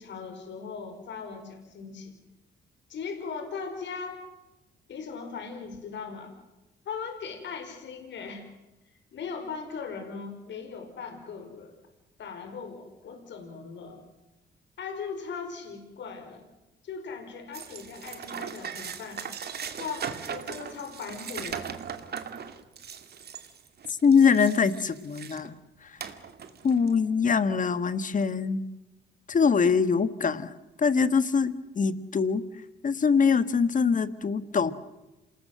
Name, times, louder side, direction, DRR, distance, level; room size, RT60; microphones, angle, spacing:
voice 1, 0.0-2.1 2.9-4.2 4.9-6.4 6.8-8.4 9.1-11.7 12.2-14.0 14.8-16.5 16.8-19.2 19.8-21.7, left 5 dB, 65° left, 5 dB, 5.0 m, -39 dB
sound 1, 17.5-25.5 26.0-27.0, right 7 dB, 55° right, 2.4 m, -39 dB
voice 2, 24.0-25.5 25.8-26.0 26.6-28.6 29.3-30.5 30.8-32.4 32.8-34.7, left 5 dB, 40° left, 14 dB, 1.6 m, -23 dB
27.5 x 20.0 x 7.7 m, 1.0 s
cardioid pair, 90°, 20 cm